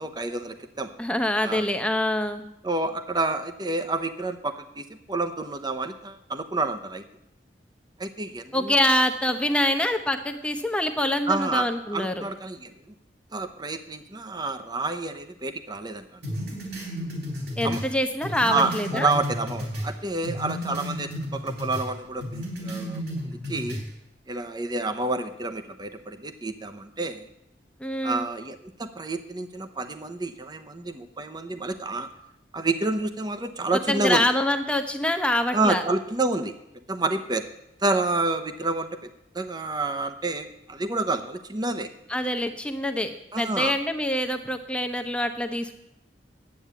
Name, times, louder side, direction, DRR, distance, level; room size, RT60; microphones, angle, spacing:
voice 1, 0.0-0.9 1.4-1.7 2.6-7.1 8.0-8.8 11.3-12.9 13.3-16.0 17.6-17.8 18.5-23.8 24.3-27.3 28.0-32.1 32.5-34.3 35.5-36.5 36.9-37.5 37.8-39.1 39.3-41.9 43.3-43.8, right 2 dB, 25° right, 8 dB, 0.9 m, -29 dB
voice 2, 1.0-2.4 8.5-12.2 17.6-19.1 27.8-28.3 33.9-35.8 42.1-45.7, left 1 dB, 5° left, 6 dB, 0.9 m, -25 dB
sound 1, 16.2-19.9 20.2-21.9 22.2-23.9, equal, 70° right, 3.9 m, -33 dB
10.5 x 8.8 x 8.3 m, 0.83 s
head